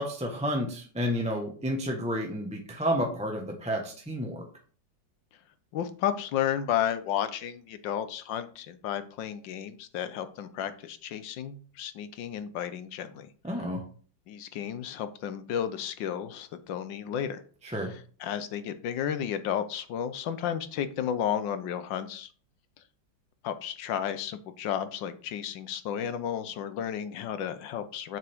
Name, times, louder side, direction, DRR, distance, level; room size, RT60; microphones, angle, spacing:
voice 1, 0.0-4.5 13.4-13.8 17.6-17.9, equal, 5° right, 1 dB, 0.8 m, -30 dB
voice 2, 5.7-13.3 13.6-13.7 14.3-17.4 17.7-22.3 23.4-28.2, left 9 dB, 75° left, 11 dB, 1.4 m, -33 dB
7.4 x 6.1 x 3.5 m, 0.42 s
omnidirectional pair, 2.1 m